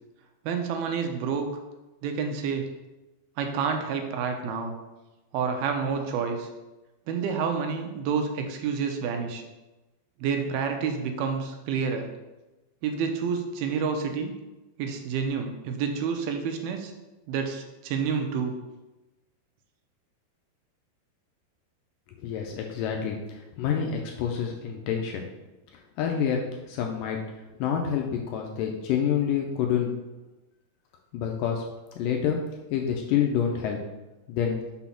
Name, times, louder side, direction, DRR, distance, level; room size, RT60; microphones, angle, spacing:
voice 1, 0.5-1.5 2.0-2.7 3.4-4.7 5.3-6.5 7.1-9.4 10.2-12.1 12.8-14.3 14.8-16.9 17.3-18.6, right 6 dB, 85° right, 5 dB, 2.6 m, -29 dB
voice 2, 22.2-25.3 26.0-27.2 27.6-29.9 31.1-31.6 32.0-32.4 32.7-33.8 34.3-34.6, left 8 dB, 85° left, 1 dB, 2.0 m, -27 dB
6.0 x 4.1 x 5.8 m, 1.1 s
omnidirectional pair, 4.3 m